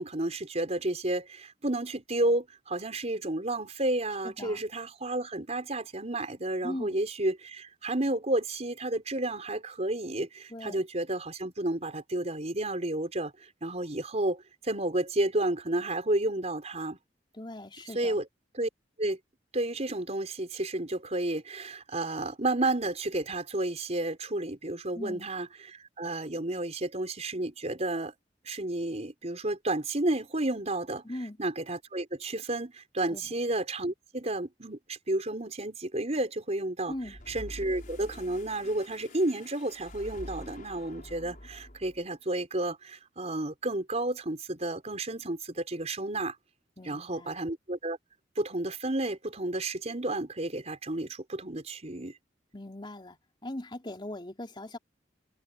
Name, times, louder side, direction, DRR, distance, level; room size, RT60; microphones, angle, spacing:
voice 1, 0.0-17.0 17.9-18.2 18.5-18.7 19.0-19.2 19.5-28.1 28.4-31.0 31.4-36.9 37.3-46.3 46.8-48.0 48.3-52.1, right 1 dB, 40° right, 5.0 m, -31 dB
voice 2, 4.2-4.6 6.6-7.0 10.5-10.9 17.3-18.2 24.9-25.3 31.0-31.4 33.1-33.4 36.9-37.2 46.8-47.3 52.5-54.8, left 1 dB, 25° left, 4.0 m, -40 dB
sound 1, 36.9-42.1, left 1 dB, 50° left, 5.8 m, -46 dB
head